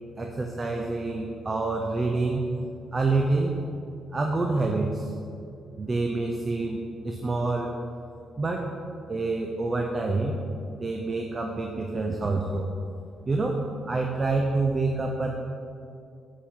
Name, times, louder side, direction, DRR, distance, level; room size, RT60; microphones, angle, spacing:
voice 1, 0.2-2.4 2.9-3.5 4.1-5.1 5.8-7.7 8.4-8.7 9.1-10.5 10.7-12.6 13.3-13.6 13.8-15.3, right 3 dB, 30° right, 2 dB, 0.5 m, -27 dB
7.0 x 4.4 x 3.6 m, 2.5 s
cardioid pair, 90°, 0 cm